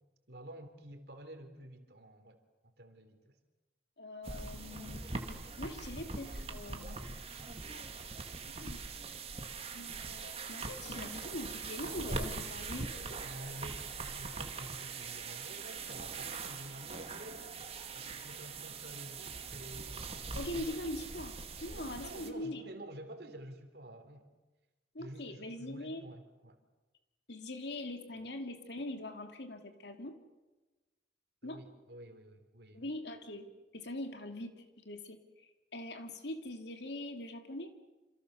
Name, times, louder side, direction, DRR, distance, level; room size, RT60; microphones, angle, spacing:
voice 1, 0.3-3.4 13.2-17.5 17.9-20.8 21.7-24.3 25.0-26.6 31.4-32.9, right 1 dB, 60° right, 7 dB, 3.3 m, -50 dB
voice 2, 4.0-7.0 7.6-8.1 8.5-8.8 9.7-13.2 20.3-21.3 21.6-22.6 24.9-26.0 27.3-30.2 31.4-31.6 32.7-33.4 33.7-37.7, left 1 dB, 70° left, 6 dB, 2.6 m, -43 dB
sound 1, 4.2-22.3, right 4 dB, 35° right, 2.2 m, -42 dB
28.0 x 27.0 x 6.7 m, 1.1 s
head